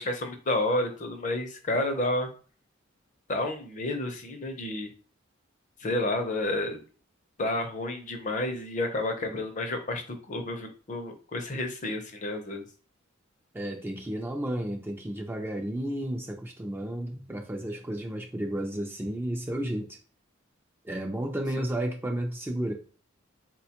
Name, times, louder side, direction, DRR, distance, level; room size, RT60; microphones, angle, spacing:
voice 1, 0.0-2.3 3.3-4.9 5.8-6.8 7.4-12.6 21.6-21.7, left 1 dB, 40° left, 0.6 m, -30 dB
voice 2, 13.5-20.0 20.8-22.7, right 1 dB, 10° right, 0.4 m, -32 dB
4.2 x 2.2 x 2.8 m
head